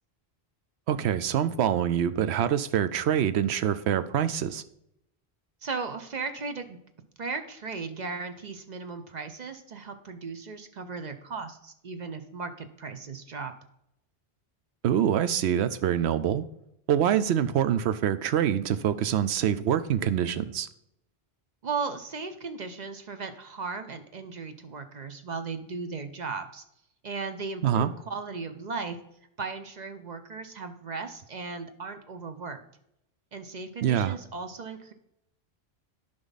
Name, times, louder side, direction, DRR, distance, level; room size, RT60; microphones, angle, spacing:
voice 1, 0.9-4.6 14.8-16.4 16.9-20.7 27.6-27.9 33.8-34.2, right 9 dB, 85° right, 12 dB, 0.9 m, -25 dB
voice 2, 5.6-6.8 7.2-13.5 21.6-26.6 27.0-29.0 29.4-32.6 33.3-34.9, right 4 dB, 50° right, 8 dB, 0.7 m, -36 dB
11.5 x 5.3 x 4.0 m, 0.78 s
omnidirectional pair, 1.1 m